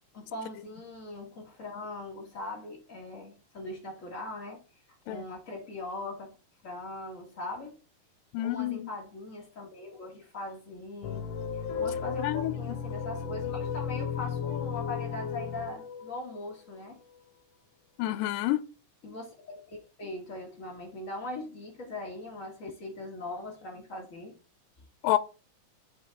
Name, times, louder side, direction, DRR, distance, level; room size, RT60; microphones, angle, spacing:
voice 1, 0.1-4.6 5.0-6.4 6.6-7.8 8.4-11.3 11.6-17.0 19.0-24.3, left 2 dB, 30° left, 1.6 m, -40 dB
voice 2, 8.3-8.9 12.2-12.5 18.0-18.6 25.0-25.2, left 15 dB, 85° left, 2.2 m, -28 dB
sound 1, 11.0-17.2, left 7 dB, 65° left, 1.8 m, -34 dB
7.3 x 4.4 x 3.5 m
omnidirectional pair, 3.9 m